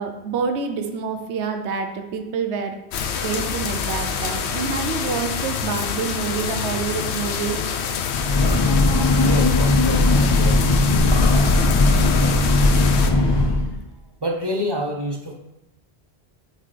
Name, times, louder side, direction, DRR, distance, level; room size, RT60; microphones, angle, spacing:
voice 1, 0.0-2.7 3.2-7.6, right 5 dB, 85° right, 5 dB, 1.0 m, -27 dB
sound 1, 2.9-13.1, left 6 dB, 80° left, 0.9 m, -26 dB
Breathing / Train, 8.1-13.8, left 2 dB, 45° left, 0.3 m, -18 dB
voice 2, 9.1-10.6 13.5-13.7 14.2-15.3, equal, 30° right, 1 dB, 0.6 m, -28 dB
7.5 x 3.8 x 3.3 m, 0.96 s
omnidirectional pair, 1.1 m